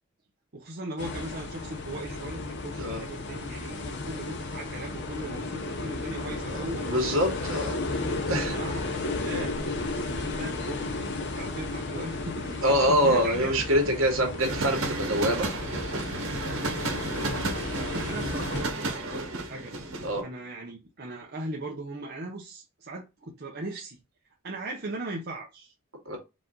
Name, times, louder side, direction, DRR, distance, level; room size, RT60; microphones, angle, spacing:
voice 1, 0.5-6.9 8.5-9.6 9.9-10.9 11.3-13.5 17.7-19.7 20.2-24.0 24.4-25.7, right 2 dB, 50° right, 0.7 m, -38 dB
sound 1, 1.0-18.6, left 2 dB, 55° left, 0.8 m, -34 dB
voice 2, 6.4-7.8 8.3-8.6 12.6-15.5 20.0-20.2 26.1-26.2, equal, 75° right, 1.9 m, -25 dB
sound 2, 14.4-20.2, right 2 dB, 90° right, 1.3 m, -32 dB
4.8 x 2.6 x 3.8 m
head